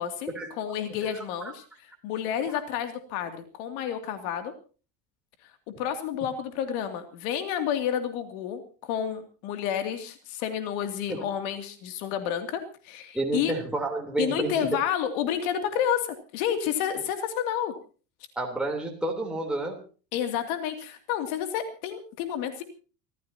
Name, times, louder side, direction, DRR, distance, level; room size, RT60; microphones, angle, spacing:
voice 1, 0.6-1.6 2.0-4.5 5.8-13.5 14.2-17.7 20.1-22.6, left 9 dB, 80° left, 7 dB, 2.7 m, -30 dB
voice 2, 13.1-14.8 18.4-19.8, right 2 dB, ahead, -1 dB, 3.4 m, -29 dB
30.0 x 14.5 x 2.9 m, 0.37 s
cardioid pair, 145°, 42 cm